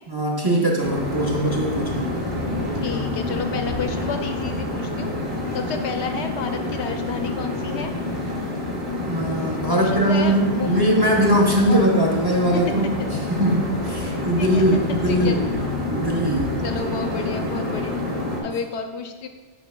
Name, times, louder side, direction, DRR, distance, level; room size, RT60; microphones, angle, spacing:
voice 1, 0.1-2.1 9.1-13.0 13.3-15.4 15.9-16.5, right 1 dB, 25° right, -2 dB, 0.8 m, -21 dB
sound 1, 0.8-18.4, left 2 dB, 45° right, 1.6 m, -27 dB
voice 2, 2.8-5.2 5.5-7.9 9.7-10.9 11.7-11.8 14.0-14.6 15.1-15.4 16.6-18.0 18.4-19.3, left 5 dB, 80° left, 6 dB, 0.9 m, -31 dB
9.1 x 5.2 x 2.3 m, 1.3 s
omnidirectional pair, 1.1 m